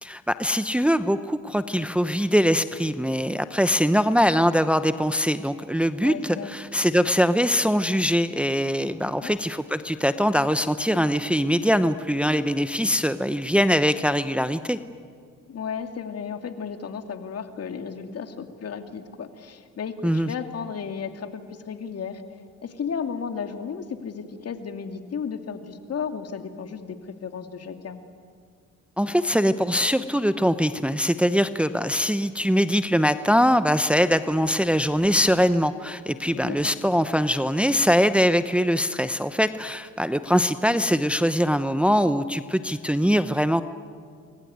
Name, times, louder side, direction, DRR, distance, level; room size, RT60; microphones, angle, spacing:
voice 1, 0.0-14.8 20.0-20.3 29.0-43.6, equal, 5° right, 11 dB, 0.9 m, -22 dB
voice 2, 6.0-6.5 9.0-9.4 15.5-22.2 22.6-28.0 36.3-36.8, left 6 dB, 55° left, 7 dB, 2.5 m, -34 dB
27.5 x 23.0 x 9.5 m, 2.1 s
cardioid pair, 90°, 30 cm